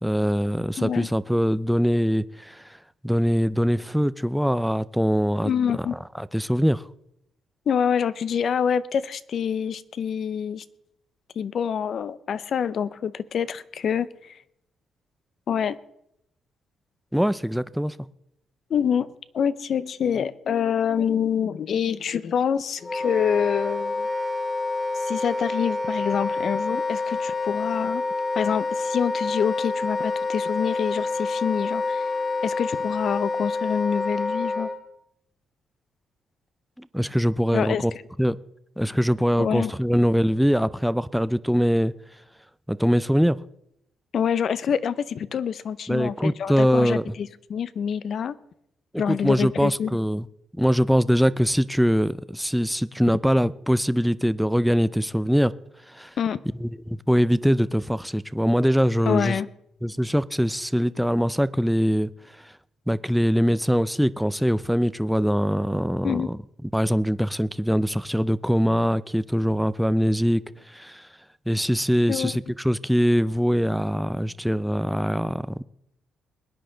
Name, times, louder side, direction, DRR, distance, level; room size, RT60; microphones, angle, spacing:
voice 1, 0.0-2.8 3.0-5.9 6.2-6.8 17.1-18.0 36.8-37.9 38.2-38.4 38.8-41.9 42.7-43.4 45.9-47.1 48.9-50.3 50.5-55.5 55.9-56.1 56.6-59.4 59.8-62.1 62.4-62.5 62.9-70.4 70.7-71.1 71.5-75.6, equal, ahead, 0.4 m, -23 dB
voice 2, 0.8-1.1 5.4-6.0 7.7-10.6 11.4-14.4 15.5-15.8 18.7-24.1 24.9-28.0 28.4-32.1 32.4-34.7 37.5-37.8 39.4-39.7 44.1-48.4 49.0-50.0 56.2-56.4 59.1-59.5 66.0-66.3 72.1-72.4, left 7 dB, 55° left, 0.6 m, -26 dB
Wind instrument woodwind instrument, 22.8-34.8, left 3 dB, 25° left, 1.9 m, -27 dB
21.5 x 10.0 x 3.9 m
cardioid pair, 130°, 0 cm